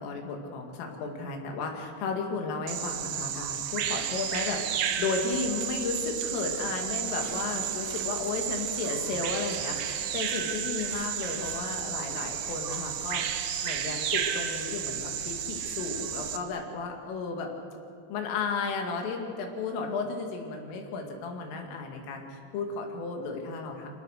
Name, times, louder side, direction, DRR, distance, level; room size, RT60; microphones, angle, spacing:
voice 1, 0.0-13.3 13.6-17.5 18.1-24.0, left 4 dB, 90° left, 2 dB, 4.7 m, -34 dB
Bird vocalization bird call bird song, 2.7-16.4, right 9 dB, 80° right, 2.0 m, -32 dB
24.5 x 18.5 x 6.5 m, 2.5 s
omnidirectional pair, 5.6 m